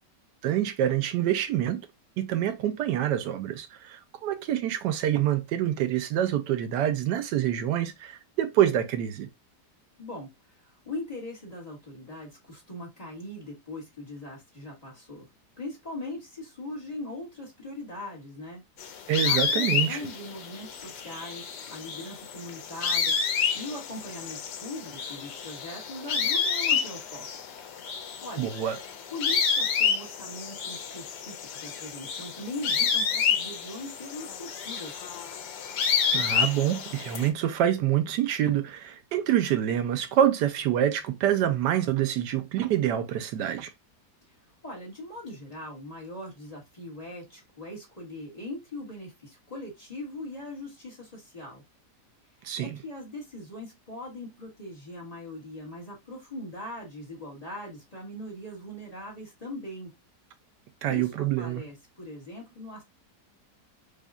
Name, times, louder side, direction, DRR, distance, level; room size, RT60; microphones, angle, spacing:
voice 1, 0.4-1.8 2.2-9.3 19.1-20.0 28.4-28.8 36.1-43.7 52.4-52.8 60.8-61.6, right 11 dB, 85° right, 1.2 m, -26 dB
voice 2, 10.0-15.3 15.6-18.6 19.2-23.2 23.5-27.3 28.0-28.5 29.1-34.9 44.6-51.6 52.4-59.9 60.9-62.8, left 1 dB, 25° left, 1.5 m, -40 dB
sound 1, 18.8-37.3, left 6 dB, 80° left, 1.3 m, -29 dB
4.9 x 2.6 x 2.2 m
omnidirectional pair, 1.8 m